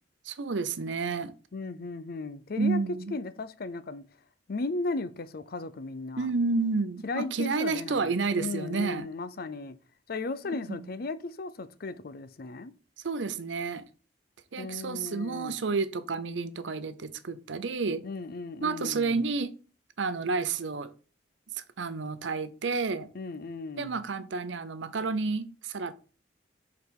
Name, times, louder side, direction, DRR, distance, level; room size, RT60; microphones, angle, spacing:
voice 1, 0.2-1.3 2.6-3.1 6.2-9.1 10.7-10.9 13.0-13.9 14.5-18.0 18.6-19.5 20.0-20.9 21.5-23.1 23.8-25.9, right 4 dB, 80° right, 0.6 m, -30 dB
voice 2, 1.5-4.0 4.5-6.3 7.0-9.8 10.1-12.7 14.6-15.6 18.0-19.3 23.1-24.0, left 3 dB, 55° left, 0.5 m, -36 dB
5.3 x 4.0 x 4.6 m
head